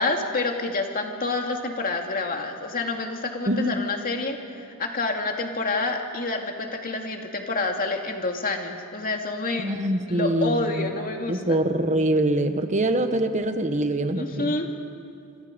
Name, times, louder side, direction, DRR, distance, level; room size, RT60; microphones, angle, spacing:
voice 1, 0.0-9.7 10.0-11.6 14.1-14.7, left 3 dB, 40° left, 2 dB, 2.5 m, -28 dB
voice 2, 3.5-3.9 9.6-10.9 11.3-14.6, right 1 dB, 35° right, 8 dB, 1.4 m, -24 dB
26.5 x 26.0 x 5.3 m, 2.5 s
head